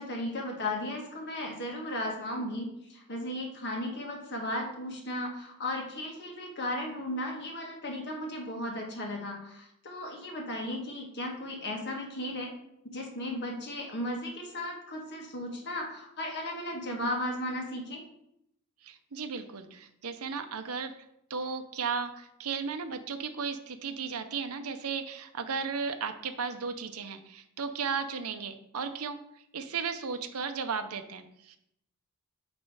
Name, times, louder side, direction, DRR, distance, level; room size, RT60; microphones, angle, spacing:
voice 1, 0.0-12.5 12.9-18.0, left 1 dB, 50° left, 0 dB, 1.5 m, -35 dB
voice 2, 18.8-20.9 21.3-29.2 29.5-31.6, right 5 dB, 75° right, 8 dB, 0.7 m, -35 dB
9.1 x 3.2 x 4.8 m, 0.76 s
head